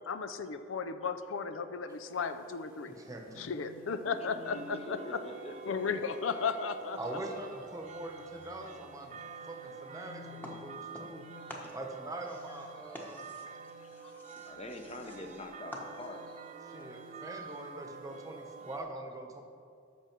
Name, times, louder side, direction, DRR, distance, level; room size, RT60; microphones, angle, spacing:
voice 1, 0.1-2.9 3.4-5.2 5.7-7.0, left 5 dB, 80° left, 10 dB, 0.5 m, -35 dB
sound 1, 1.9-18.8, left 1 dB, 45° left, 1.7 m, -57 dB
voice 2, 2.8-3.5 7.0-11.2 11.7-13.3 16.7-19.4, right 1 dB, 15° right, 3 dB, 1.0 m, -43 dB
voice 3, 4.0-6.1 7.0-7.8 8.4-8.7 9.9-10.0 11.4-11.6 12.5-13.0 13.5-16.5 17.2-17.4 18.4-18.5, left 1 dB, 30° left, 4 dB, 0.9 m, -47 dB
sound 2, 4.4-18.8, right 6 dB, 35° right, 0.5 m, -49 dB
sound 3, 10.4-11.2 11.5-16.3, equal, 10° left, 1.1 m, -49 dB
13.5 x 6.3 x 4.5 m, 2.4 s
head